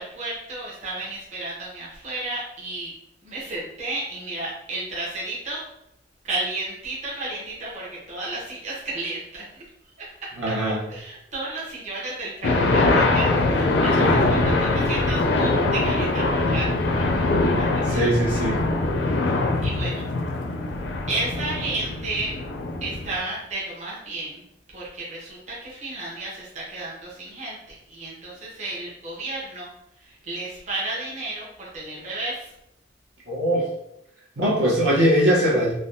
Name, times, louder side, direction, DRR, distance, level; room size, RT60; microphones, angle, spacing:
voice 1, 0.0-2.9 3.2-5.6 6.2-9.6 10.0-10.3 10.9-18.1 19.0-20.0 21.1-22.3 22.8-24.4 24.7-29.7 30.0-32.5, right 2 dB, 40° right, -6 dB, 0.9 m, -33 dB
voice 2, 10.4-10.8 14.0-14.2 17.8-18.6 33.3-33.7 34.4-35.7, equal, 70° right, -5 dB, 0.9 m, -21 dB
sound 1, 12.4-23.2, left 2 dB, 65° left, 0.4 m, -22 dB
3.4 x 2.1 x 2.6 m, 0.82 s
head